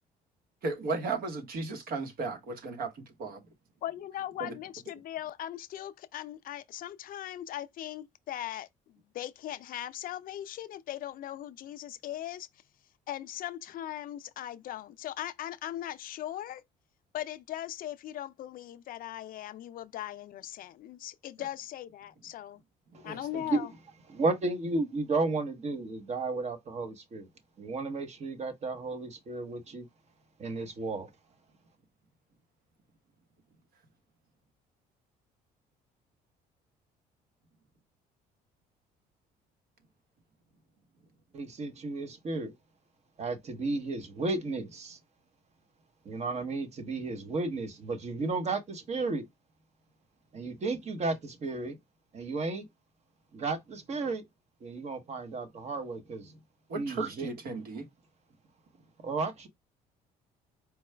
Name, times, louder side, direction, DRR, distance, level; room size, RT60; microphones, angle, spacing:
voice 1, 0.6-3.4 4.4-4.5 23.0-23.4 56.7-57.9, right 3 dB, 60° right, 1.1 m, -35 dB
voice 2, 3.8-12.5 13.1-16.6 17.1-22.6 23.0-23.7, left 12 dB, 55° left, 0.4 m, -39 dB
voice 3, 24.1-27.3 27.6-29.9 30.4-31.1 41.3-42.5 43.2-45.0 46.0-49.3 50.3-51.8 52.1-52.7 53.3-54.2 54.6-56.4 56.7-57.3 59.0-59.5, right 3 dB, 40° right, 0.9 m, -33 dB
4.6 x 2.2 x 3.2 m
cardioid pair, 110°, 17 cm